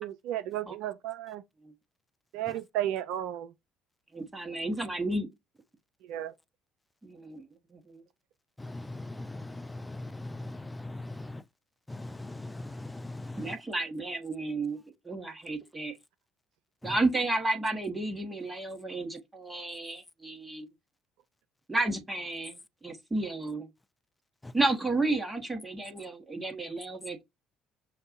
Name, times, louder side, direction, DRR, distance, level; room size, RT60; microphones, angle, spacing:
voice 1, 0.0-1.4 2.3-3.5 6.1-6.3, right 12 dB, 70° right, 0.3 m, -33 dB
voice 2, 4.1-5.3 7.0-7.5 7.7-8.0 13.4-16.0 16.8-20.7 21.7-23.7 24.5-27.2, right 2 dB, 15° right, 1.2 m, -32 dB
voice 3, 8.6-11.4 11.9-13.6 16.8-17.0 24.4-24.5, left 2 dB, 10° left, 0.4 m, -40 dB
6.4 x 2.3 x 2.6 m
hypercardioid pair, 60°, 0 cm